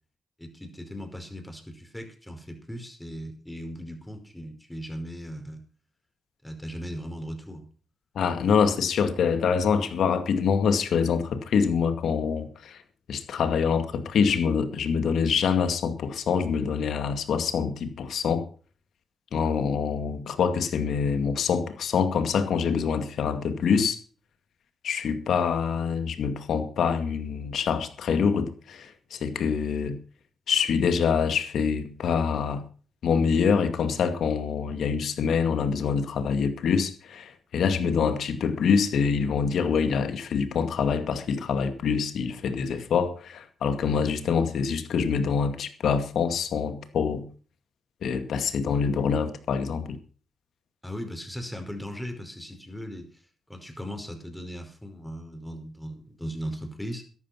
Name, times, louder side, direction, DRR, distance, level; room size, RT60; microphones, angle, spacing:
voice 1, 0.4-5.6 6.4-7.7 50.8-53.1 53.5-57.0, equal, 10° left, 5.1 m, -38 dB
voice 2, 8.2-12.8 13.1-18.5 19.3-24.0 24.8-30.0 30.5-32.6 33.0-47.2 48.0-50.0, left 6 dB, 75° left, 2.2 m, -25 dB
13.5 x 11.5 x 5.9 m
cardioid pair, 60°, 0 cm